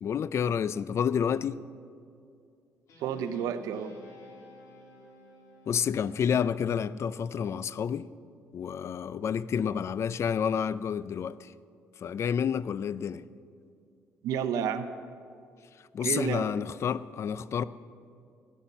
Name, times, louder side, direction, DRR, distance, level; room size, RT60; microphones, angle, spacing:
voice 1, 0.0-1.6 5.7-8.1 8.5-11.5 12.0-13.2 15.9-17.6, left 7 dB, 50° left, 0.4 m, -29 dB
Guitar, 2.9-7.6, left 2 dB, 70° left, 2.8 m, -54 dB
voice 2, 3.0-4.0 14.2-14.9 16.0-16.5, right 8 dB, 80° right, 0.8 m, -30 dB
13.0 x 9.3 x 7.0 m
supercardioid pair, 75°, 6 cm